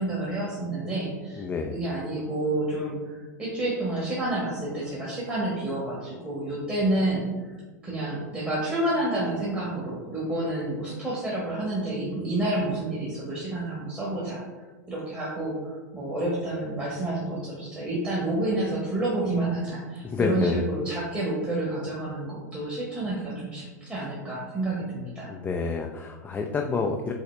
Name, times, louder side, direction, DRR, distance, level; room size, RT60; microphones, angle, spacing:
voice 1, 0.0-1.4 1.7-7.3 7.8-14.4 14.9-25.3, right 1 dB, 10° right, -6 dB, 1.2 m, -29 dB
voice 2, 1.4-1.8 20.0-20.6 25.3-27.1, left 4 dB, 15° left, 2 dB, 0.3 m, -28 dB
5.7 x 2.8 x 3.2 m, 1.3 s
hypercardioid pair, 100°, 10 cm